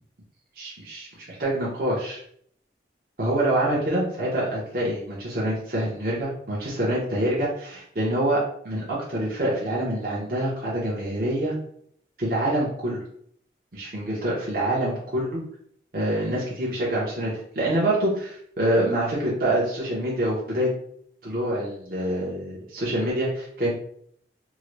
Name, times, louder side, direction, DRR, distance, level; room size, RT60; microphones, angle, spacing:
voice 1, 0.6-2.2 3.2-11.5 12.2-13.0 13.7-15.4 15.9-20.7 21.2-23.7, right 1 dB, 50° right, -6 dB, 0.8 m, -26 dB
3.6 x 2.1 x 3.1 m, 0.65 s
head